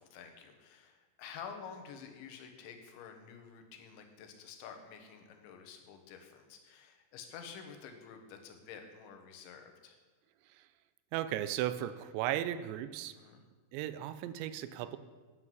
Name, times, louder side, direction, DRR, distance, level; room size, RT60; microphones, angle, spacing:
voice 1, 0.0-10.0 13.2-13.4, left 7 dB, 90° left, 5 dB, 3.5 m, -50 dB
voice 2, 11.1-13.2 13.7-15.0, right 12 dB, 85° right, 13 dB, 2.9 m, -36 dB
9.8 x 7.7 x 7.4 m, 1.4 s
omnidirectional pair, 5.1 m